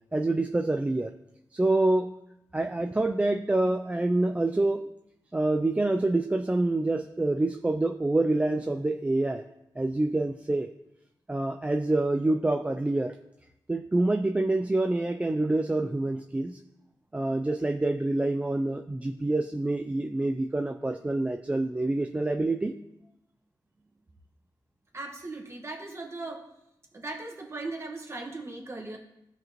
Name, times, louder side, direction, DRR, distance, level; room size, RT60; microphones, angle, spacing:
voice 1, 0.1-1.1 1.5-2.1 2.5-4.9 5.3-9.4 9.8-10.7 11.3-13.1 13.7-16.6 17.1-22.8, right 2 dB, 15° right, 4 dB, 0.4 m, -26 dB
voice 2, 24.9-26.4 26.9-29.0, right 2 dB, 35° right, 1 dB, 1.5 m, -38 dB
14.5 x 5.1 x 3.0 m, 0.84 s
wide cardioid pair, 95°, 8 cm